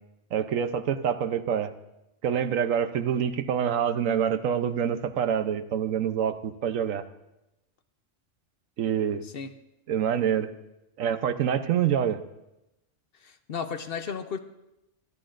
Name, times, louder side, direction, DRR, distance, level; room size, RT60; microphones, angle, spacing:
voice 1, 0.3-1.7 2.2-7.0 8.8-9.2 9.9-10.5 11.0-12.2, right 8 dB, 90° right, 10 dB, 1.2 m, -26 dB
voice 2, 13.2-14.4, left 6 dB, 55° left, 9 dB, 0.8 m, -34 dB
26.0 x 11.0 x 2.5 m, 0.91 s
omnidirectional pair, 1.3 m